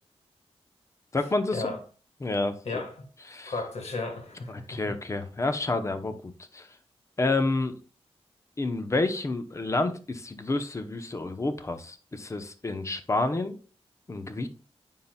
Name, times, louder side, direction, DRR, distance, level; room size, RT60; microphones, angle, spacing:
voice 1, 1.1-1.7 2.2-2.6 3.3-3.5 4.5-6.2 6.5-6.7 7.2-7.7 8.6-13.6 14.1-14.5, left 2 dB, 30° left, 0.7 m, -29 dB
voice 2, 2.6-3.1 3.5-5.0, left 3 dB, 80° left, 1.6 m, -34 dB
9.2 x 5.6 x 2.2 m
wide cardioid pair, 145°, 11 cm